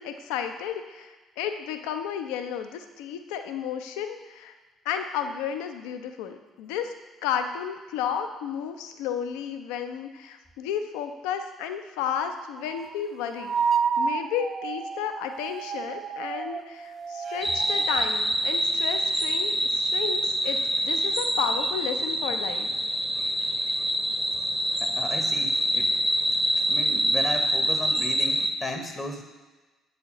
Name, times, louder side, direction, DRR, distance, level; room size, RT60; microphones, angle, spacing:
voice 1, 0.0-4.5 4.8-6.9 7.2-22.7, left 8 dB, 70° left, 7 dB, 0.4 m, -32 dB
sound 1, 12.6-12.9 13.4-18.0, right 6 dB, 45° right, 0.3 m, -30 dB
sound 2, 17.4-28.5, right 1 dB, 10° right, 0.7 m, -26 dB
voice 2, 24.8-26.0 26.7-29.2, left 1 dB, 25° left, 5 dB, 0.7 m, -35 dB
8.2 x 4.2 x 2.9 m, 1.2 s
figure-of-eight pair, 50°, 0 cm